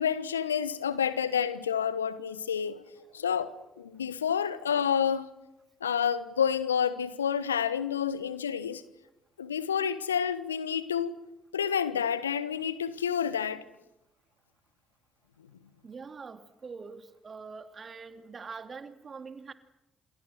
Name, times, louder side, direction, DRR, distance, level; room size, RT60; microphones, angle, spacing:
voice 1, 0.0-2.8 3.1-5.3 5.8-8.8 9.4-11.2 11.5-13.6, left 8 dB, 85° left, 1.1 m, -29 dB
voice 2, 15.8-19.5, right 5 dB, 40° right, 2.8 m, -44 dB
29.0 x 28.5 x 6.5 m
figure-of-eight pair, 40°, 0 cm